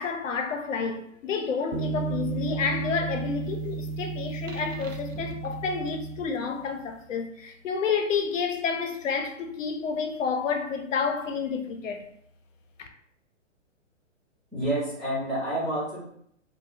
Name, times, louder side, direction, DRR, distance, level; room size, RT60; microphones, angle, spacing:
voice 1, 0.0-12.1 12.8-12.9, left 5 dB, 80° left, 0.6 m, -30 dB
sound 1, 1.7-6.6, right 4 dB, 85° right, 0.5 m, -33 dB
voice 2, 14.5-16.0, right 1 dB, ahead, 0.7 m, -28 dB
3.4 x 2.2 x 2.4 m
hypercardioid pair, 140°, 38 cm